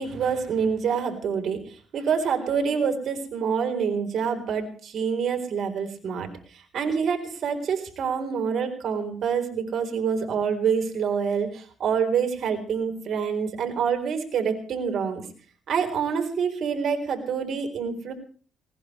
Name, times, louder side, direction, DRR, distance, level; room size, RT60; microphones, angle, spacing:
voice 1, 0.0-15.2 15.7-18.1, right 6 dB, 65° right, 5 dB, 3.8 m, -27 dB
19.5 x 18.0 x 3.3 m, 0.43 s
cardioid pair, 90°, 0 cm